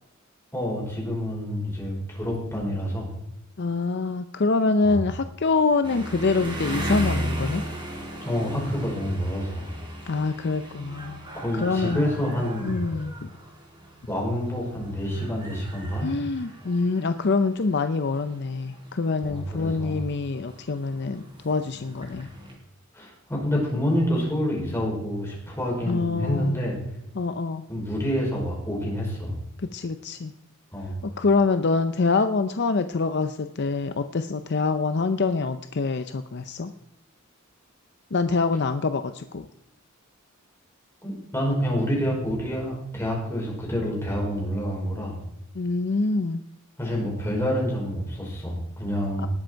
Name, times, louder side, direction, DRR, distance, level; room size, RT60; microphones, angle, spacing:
voice 1, 0.5-3.1 4.8-5.0 8.2-9.7 11.3-12.8 14.1-16.1 19.2-20.0 22.9-26.8 27.7-29.4 30.7-31.0 41.0-45.2 46.8-49.3, equal, 10° left, -2 dB, 5.0 m, -28 dB
voice 2, 3.6-7.6 10.1-11.2 11.5-12.0 12.6-13.3 16.0-22.3 25.9-26.5 27.2-27.6 29.7-30.3 31.0-36.7 38.1-39.4 45.5-46.4 49.2-49.3, left 3 dB, 55° left, 9 dB, 0.6 m, -25 dB
sound 1, 5.8-22.5, equal, 25° right, 4.3 m, -36 dB
19.5 x 7.8 x 4.6 m, 0.85 s
head